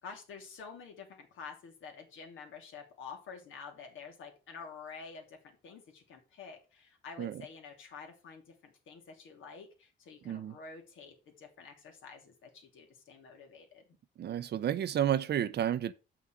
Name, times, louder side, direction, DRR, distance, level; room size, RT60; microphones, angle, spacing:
voice 1, 0.0-13.8, left 5 dB, 80° left, 2.9 m, -49 dB
voice 2, 10.2-10.6 14.2-15.9, right 10 dB, 60° right, 0.7 m, -31 dB
7.1 x 5.9 x 6.2 m
cardioid pair, 90°, 20 cm